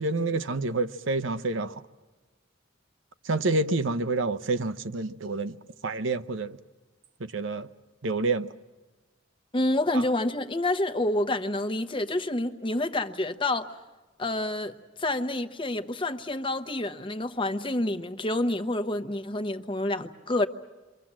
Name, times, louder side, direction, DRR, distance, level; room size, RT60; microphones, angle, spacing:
voice 1, 0.0-1.8 3.2-5.6 5.8-6.6 7.2-7.7 8.0-8.5 9.9-10.0, right 3 dB, 75° right, 0.8 m, -28 dB
voice 2, 9.5-13.7 14.2-14.7 15.0-20.5, left 1 dB, 25° left, 0.9 m, -28 dB
28.5 x 24.0 x 7.5 m
head